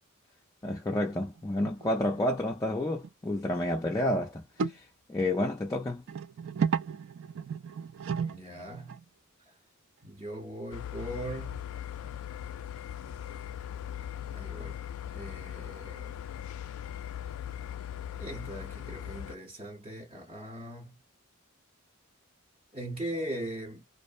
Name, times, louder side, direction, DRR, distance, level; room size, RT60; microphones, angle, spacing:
voice 1, 0.6-6.0, left 1 dB, 15° left, 0.4 m, -30 dB
sound 1, 1.4-1.9 2.2-2.3 3.0-3.1 3.5-3.6 4.6-4.8 6.1-9.0 11.0-11.1, right 6 dB, 65° right, 0.3 m, -33 dB
voice 2, 8.1-9.0 10.0-11.7 14.3-14.8 15.1-16.2 18.2-21.0 22.7-23.8, right 1 dB, 25° right, 0.8 m, -40 dB
sound 2, 10.7-19.4, left 10 dB, 90° left, 0.3 m, -39 dB
2.5 x 2.0 x 2.4 m
head